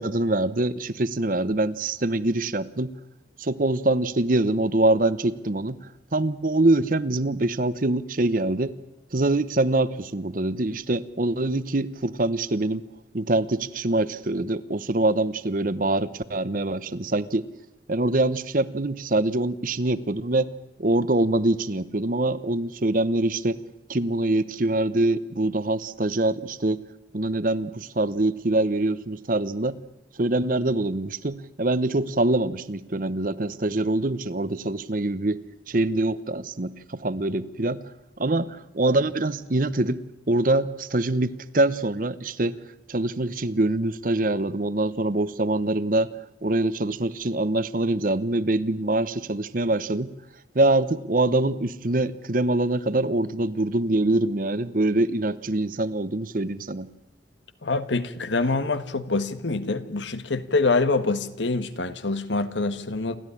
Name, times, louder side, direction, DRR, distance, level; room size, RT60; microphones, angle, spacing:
voice 1, 0.0-2.9 3.4-5.8 6.1-8.7 9.1-12.8 13.1-17.4 17.9-20.5 20.8-23.6 23.9-26.8 27.1-29.8 30.2-37.8 38.2-42.6 42.9-46.1 46.4-50.1 50.5-56.9, right 2 dB, 50° right, 16 dB, 0.9 m, -24 dB
voice 2, 57.6-63.2, left 3 dB, 85° left, 12 dB, 1.5 m, -25 dB
28.5 x 13.0 x 9.9 m, 0.90 s
head